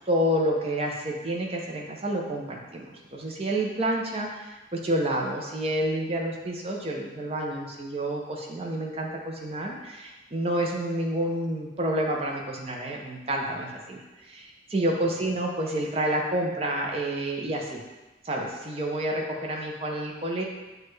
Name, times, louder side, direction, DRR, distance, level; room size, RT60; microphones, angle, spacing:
voice 1, 0.1-2.9 3.1-17.8 18.2-20.4, right 1 dB, 30° right, 0 dB, 0.5 m, -29 dB
6.2 x 2.2 x 3.1 m, 1.1 s
head